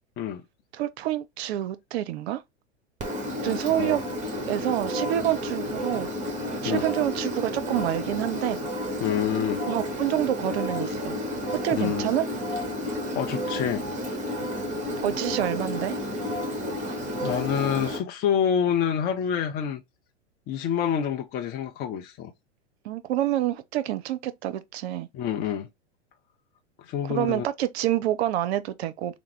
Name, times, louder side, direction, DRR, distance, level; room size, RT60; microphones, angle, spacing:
voice 1, 0.7-2.4 3.4-4.0 4.5-6.1 6.6-8.6 9.7-11.2 11.6-12.2 15.0-16.0 22.8-25.1 27.0-29.2, right 13 dB, 65° right, 0.6 m, -27 dB
Engine, 3.0-18.0, left 1 dB, 20° right, 1.3 m, -31 dB
voice 2, 9.0-9.6 11.7-12.1 13.1-13.8 17.2-19.8 20.5-22.3 25.1-25.7 26.8-27.5, left 8 dB, 30° left, 0.5 m, -27 dB
3.5 x 2.1 x 3.2 m
hypercardioid pair, 100°, 35 cm